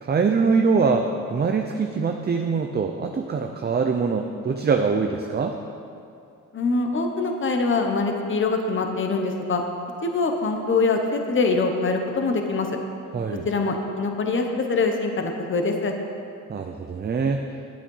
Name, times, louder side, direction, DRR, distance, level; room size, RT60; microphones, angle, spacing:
voice 1, 0.0-5.6 13.1-13.5 16.5-17.4, right 5 dB, 30° right, 4 dB, 0.6 m, -23 dB
voice 2, 6.5-9.6 10.0-12.7 13.4-15.9, left 3 dB, 40° left, 3 dB, 1.1 m, -24 dB
10.5 x 8.8 x 5.5 m, 2.6 s
cardioid pair, 110°, 32 cm